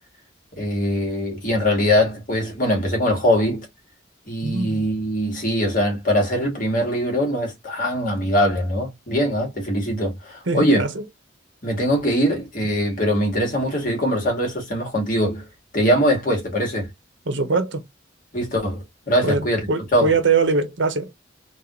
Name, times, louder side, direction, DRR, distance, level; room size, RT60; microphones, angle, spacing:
voice 1, 0.6-3.6 4.3-10.8 11.6-15.4 15.7-16.9 18.3-20.2, equal, 45° left, 1.8 m, -22 dB
voice 2, 4.4-4.8 10.5-10.9 17.3-17.8 19.2-21.1, right 4 dB, 70° right, 0.9 m, -22 dB
3.9 x 2.5 x 3.0 m
head